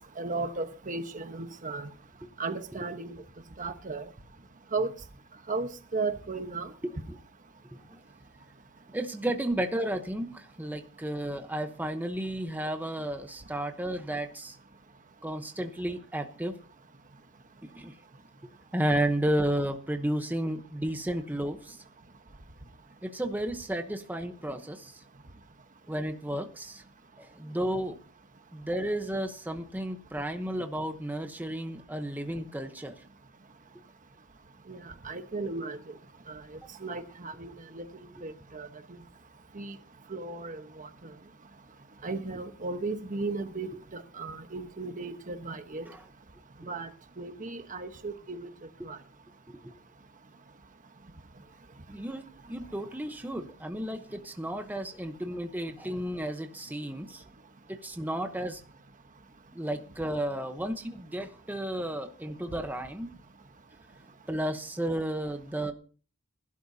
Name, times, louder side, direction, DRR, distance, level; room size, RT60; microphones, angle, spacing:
voice 1, 0.2-1.9 2.4-3.1 3.6-4.0 4.7-4.9 5.5-6.7 34.7-35.8 36.3-36.4 36.8-37.8 38.2-39.0 39.5-39.8 40.1-40.9 42.0-45.9 46.7-46.9 47.2-48.5 48.8-49.0, right 3 dB, 35° right, 1.1 m, -35 dB
voice 2, 6.8-7.2 7.7-8.0 8.9-14.6 15.2-16.6 17.6-18.0 18.7-21.8 23.0-25.0 25.9-26.8 27.2-28.0 28.5-33.0 45.8-46.1 49.5-49.8 51.9-57.2 57.7-58.6 59.5-63.1 64.3-65.7, right 1 dB, 10° right, 0.9 m, -33 dB
20.0 x 12.0 x 2.8 m
head